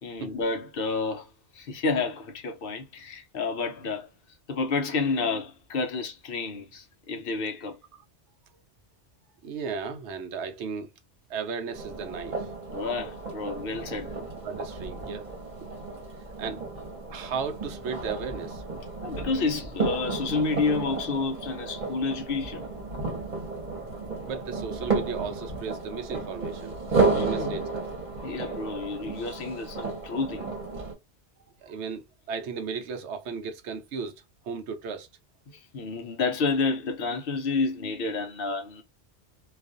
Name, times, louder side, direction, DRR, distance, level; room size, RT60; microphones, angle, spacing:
voice 1, 0.0-4.1 4.5-7.8 12.7-14.2 19.0-22.7 27.0-27.6 28.2-30.5 35.5-38.8, left 4 dB, 60° left, 0.7 m, -30 dB
voice 2, 9.4-10.9 11.3-12.5 14.4-15.2 15.6-15.7 16.4-16.6 17.1-18.6 23.8-23.9 24.2-26.8 27.2-27.8 31.6-35.1, right 5 dB, 80° right, 0.9 m, -35 dB
sound 1, 11.7-30.9, right 4 dB, 45° right, 1.0 m, -32 dB
2.4 x 2.4 x 2.4 m
omnidirectional pair, 1.2 m